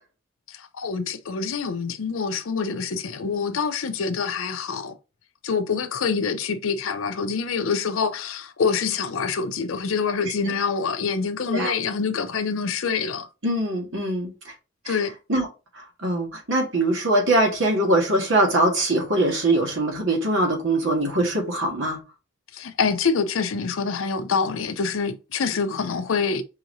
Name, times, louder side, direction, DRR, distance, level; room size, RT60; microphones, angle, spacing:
voice 1, 0.5-5.0 5.4-13.3 14.9-15.1 22.5-26.4, left 5 dB, 85° left, 0.6 m, -26 dB
voice 2, 13.4-14.5 14.9-15.0 15.3-15.5 15.7-22.0, right 1 dB, 75° right, 1.8 m, -22 dB
5.5 x 2.9 x 2.6 m
head